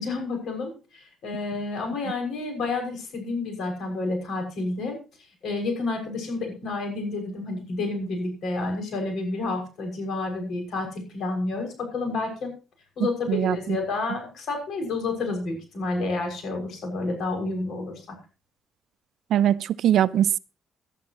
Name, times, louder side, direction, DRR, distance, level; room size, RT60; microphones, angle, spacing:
voice 1, 0.0-5.0 5.4-12.5 13.0-18.1, left 3 dB, 65° left, 6.4 m, -30 dB
voice 2, 13.0-13.8 19.3-20.4, right 10 dB, 65° right, 0.5 m, -22 dB
18.0 x 11.5 x 3.1 m
cardioid pair, 125°, 0 cm